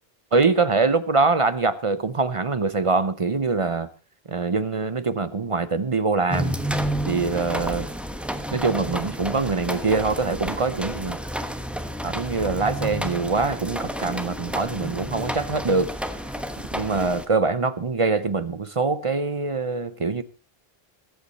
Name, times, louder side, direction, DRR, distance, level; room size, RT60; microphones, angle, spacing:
voice 1, 0.3-3.9 4.3-6.6 7.1-7.9 8.5-11.2 12.0-15.9 16.7-20.2, right 4 dB, 35° right, 0.6 m, -24 dB
sound 1, 6.3-17.2, equal, ahead, 1.0 m, -30 dB
21.5 x 8.4 x 4.1 m
omnidirectional pair, 1.0 m